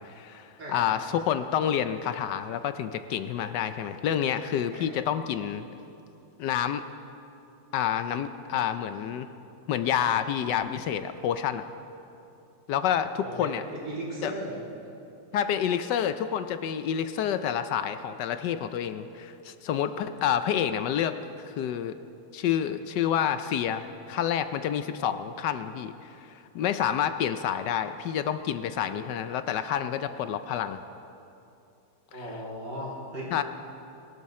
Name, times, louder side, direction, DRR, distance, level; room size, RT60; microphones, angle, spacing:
voice 1, 0.0-5.6 6.4-6.8 7.7-9.3 9.7-11.6 12.7-13.6 14.2-14.3 15.3-22.0 22.3-30.8 33.3-33.4, left 9 dB, 70° left, 10 dB, 1.0 m, -28 dB
voice 2, 4.7-5.1 13.2-14.6 32.1-33.4, right 1 dB, 50° right, -6 dB, 4.2 m, -37 dB
23.0 x 12.5 x 4.3 m, 2.7 s
omnidirectional pair, 2.3 m